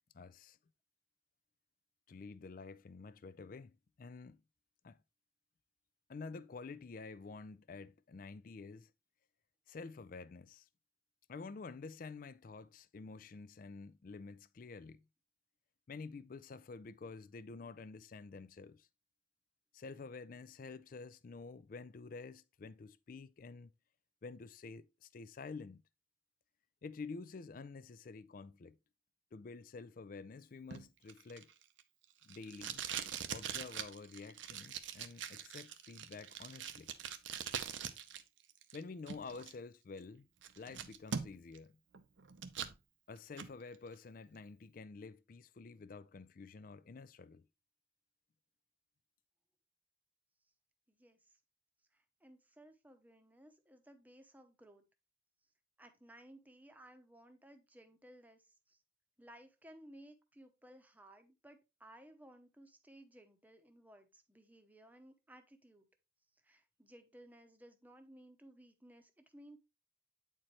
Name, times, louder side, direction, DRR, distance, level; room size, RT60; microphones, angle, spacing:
voice 1, 0.1-0.6 2.1-4.4 4.8-5.0 6.1-8.9 9.7-10.7 11.3-15.0 15.9-18.9 19.7-23.7 24.2-25.8 26.8-28.8 29.3-31.5 32.2-32.8 33.3-36.9 38.7-40.3 40.6-41.8 43.1-47.4, left 4 dB, 45° left, 0.4 m, -49 dB
Packing tape duct tape, 30.7-38.2 38.5-39.5 40.0-40.1 40.4-41.6 41.9-42.8 43.2-43.5, right 7 dB, 80° right, 0.7 m, -43 dB
voice 2, 50.9-51.4 51.9-54.8 55.8-58.8 59.2-65.9 66.4-69.6, right 1 dB, 10° right, 0.8 m, -59 dB
8.7 x 4.4 x 3.1 m
head